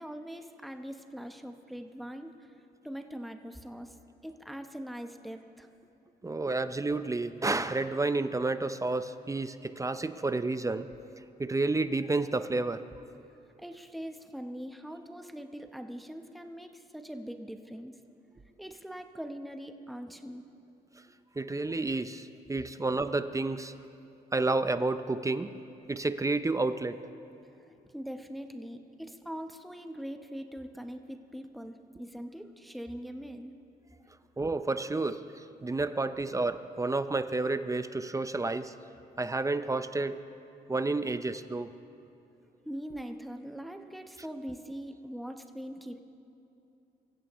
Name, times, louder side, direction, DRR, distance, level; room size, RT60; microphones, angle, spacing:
voice 1, 0.0-2.5 2.8-4.0 4.2-5.7 13.6-17.9 18.6-20.5 27.9-33.6 42.6-46.0, equal, ahead, 6 dB, 0.9 m, -42 dB
voice 2, 6.2-10.9 11.4-12.9 21.4-23.7 24.3-25.5 25.9-27.0 34.4-38.7 39.2-40.2 40.7-41.7, right 3 dB, 20° right, 11 dB, 0.6 m, -30 dB
24.0 x 15.5 x 3.1 m, 2.9 s
cardioid pair, 80°, 18 cm